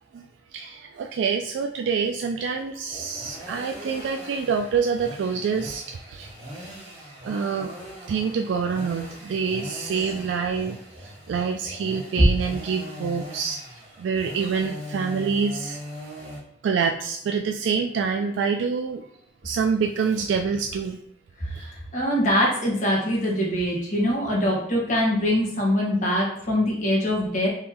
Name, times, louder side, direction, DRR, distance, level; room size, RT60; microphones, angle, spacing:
voice 1, 0.5-6.3 7.2-7.7 8.1-13.6 14.0-15.8 16.6-19.0 19.4-21.0 21.5-21.7, right 5 dB, 85° right, 4 dB, 0.3 m, -26 dB
sound 1, 2.3-16.4, equal, 35° right, 1.5 m, -40 dB
voice 2, 21.4-27.5, equal, 45° left, -4 dB, 1.3 m, -23 dB
3.8 x 3.0 x 2.9 m, 0.66 s
head